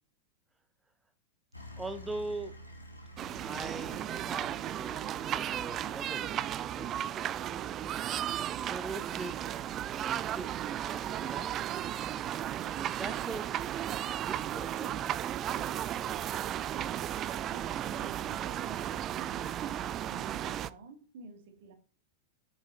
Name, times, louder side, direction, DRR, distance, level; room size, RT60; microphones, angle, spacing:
sound 1, 1.5-20.7, equal, 85° left, 2.0 m, -56 dB
voice 1, 1.8-2.5 3.4-7.0 8.7-9.3 9.9-11.5 13.0-13.7 14.3-15.2, right 3 dB, 10° right, 0.8 m, -42 dB
sound 2, 3.2-20.7, right 11 dB, 30° right, 0.4 m, -35 dB
voice 2, 20.1-21.7, right 3 dB, 55° right, 2.4 m, -52 dB
7.8 x 7.7 x 4.1 m
figure-of-eight pair, 90°, 0 cm